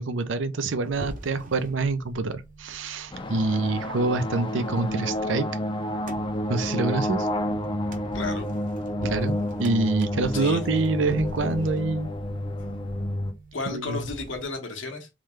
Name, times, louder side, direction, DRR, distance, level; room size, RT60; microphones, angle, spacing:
voice 1, 0.0-5.5 6.5-7.3 9.0-12.1 13.7-14.0, right 3 dB, 80° right, 0.6 m, -26 dB
sound 1, 0.8-14.5, right 1 dB, 45° right, 0.8 m, -43 dB
sound 2, 3.1-13.3, left 1 dB, 25° left, 0.5 m, -30 dB
voice 2, 8.1-8.5 10.3-10.6 13.5-15.1, left 3 dB, 85° left, 1.3 m, -33 dB
3.7 x 3.2 x 3.2 m
head